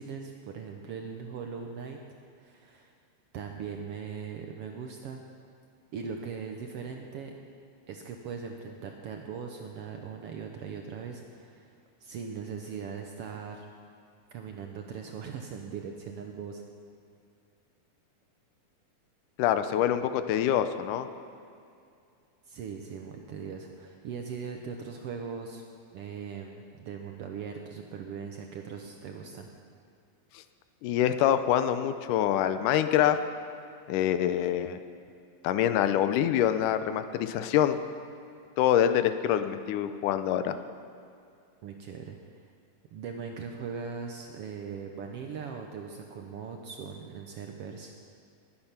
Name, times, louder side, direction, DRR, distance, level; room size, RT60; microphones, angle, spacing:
voice 1, 0.0-2.0 2.4-2.9 3.3-5.2 5.9-7.3 7.9-13.7 14.3-16.6 22.5-25.6 25.9-29.5 41.6-42.5 42.9-47.9, right 6 dB, 75° right, 3 dB, 1.4 m, -40 dB
voice 2, 19.4-21.1 30.3-30.4 30.8-33.2 33.9-34.8 35.4-37.8 38.6-40.6, left 10 dB, 80° left, 10 dB, 2.2 m, -25 dB
20.5 x 8.8 x 5.8 m, 2.4 s
omnidirectional pair, 3.7 m